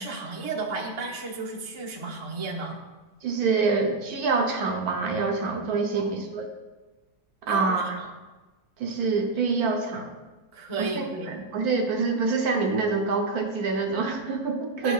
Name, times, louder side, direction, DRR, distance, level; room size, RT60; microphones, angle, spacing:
voice 1, 0.0-2.8 5.9-6.1 7.5-7.7 8.0-8.1 10.5-11.3 14.8-14.9, right 3 dB, 25° right, -2 dB, 0.7 m, -33 dB
voice 2, 3.2-6.5 7.4-8.0 8.8-10.1 10.8-14.9, right 4 dB, 70° right, 3 dB, 1.1 m, -26 dB
10.5 x 4.5 x 2.3 m, 1.2 s
omnidirectional pair, 1.8 m